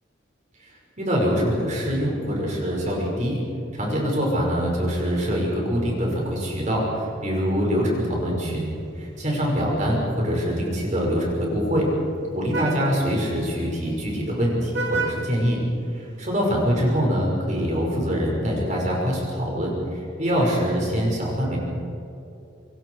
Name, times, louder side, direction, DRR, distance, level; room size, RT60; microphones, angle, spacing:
voice 1, 0.6-3.4 3.7-11.9 12.3-15.6 15.9-21.6, equal, 40° right, -2 dB, 5.4 m, -24 dB
Vehicle horn car horn honking, 8.3-16.3, right 3 dB, 60° right, 2.4 m, -36 dB
26.5 x 22.0 x 4.7 m, 2.8 s
head